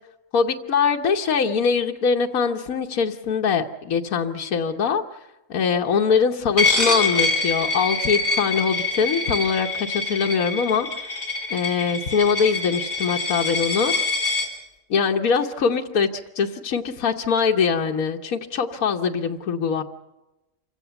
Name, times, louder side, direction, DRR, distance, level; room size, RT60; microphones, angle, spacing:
voice 1, 0.3-5.0 5.5-10.9 11.5-13.9 14.9-16.1 16.4-19.8, left 6 dB, 80° left, 3 dB, 1.5 m, -22 dB
Coin (dropping), 6.6-14.5, left 3 dB, 35° left, 3.8 m, -25 dB
26.5 x 16.0 x 7.0 m, 0.98 s
omnidirectional pair, 1.5 m